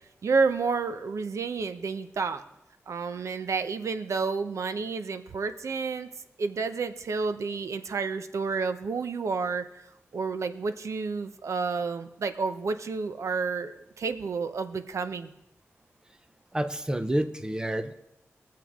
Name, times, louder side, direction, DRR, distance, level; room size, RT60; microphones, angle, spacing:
voice 1, 0.2-2.4 2.9-6.1 6.4-9.9 10.1-15.3, right 4 dB, 75° right, 9 dB, 0.8 m, -30 dB
voice 2, 16.5-17.9, right 1 dB, 15° right, 8 dB, 0.7 m, -29 dB
22.0 x 7.6 x 3.7 m, 0.85 s
wide cardioid pair, 120°, 5 cm